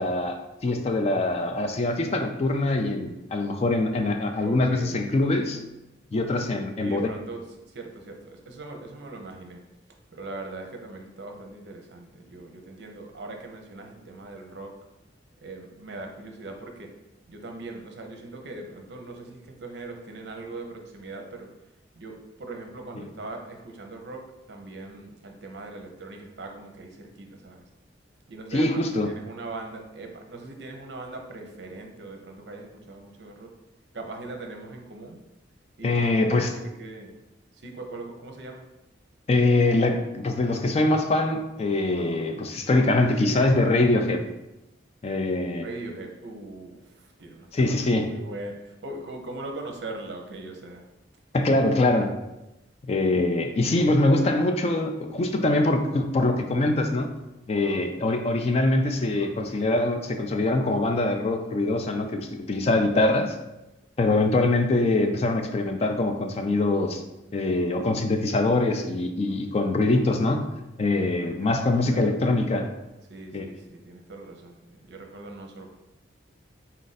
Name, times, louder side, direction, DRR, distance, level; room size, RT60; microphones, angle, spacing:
voice 1, 0.0-5.6 6.1-7.1 28.5-29.1 35.8-36.5 39.3-44.2 45.0-45.7 47.5-48.1 51.3-52.2 52.8-57.1 57.5-63.4 64.0-67.0 67.3-70.5 70.8-72.7 73.3-73.4, left 2 dB, 35° left, 5 dB, 0.3 m, -23 dB
voice 2, 4.3-5.0 6.8-9.6 10.1-14.7 15.4-16.9 17.3-21.5 21.9-27.6 28.3-33.5 33.9-35.2 35.8-36.4 36.8-37.1 37.5-38.7 45.6-50.9 71.1-72.2 73.1-75.7, right 2 dB, 60° right, 3 dB, 0.6 m, -40 dB
4.1 x 2.5 x 4.0 m, 0.94 s
head